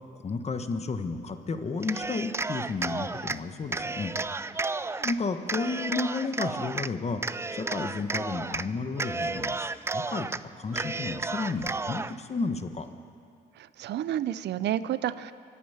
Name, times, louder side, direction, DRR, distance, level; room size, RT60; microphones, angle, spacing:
voice 1, 0.2-4.1 5.0-10.3 10.5-12.9, left 4 dB, 35° left, 8 dB, 1.2 m, -32 dB
Cheering, 1.8-3.4 3.7-5.2 5.5-6.9 7.2-8.7 8.9-10.4 10.7-12.1, right 3 dB, 15° right, 0.4 m, -32 dB
voice 2, 13.6-15.3, right 11 dB, 70° right, 15 dB, 0.6 m, -30 dB
24.0 x 8.5 x 5.8 m, 2.3 s
cardioid pair, 80°, 18 cm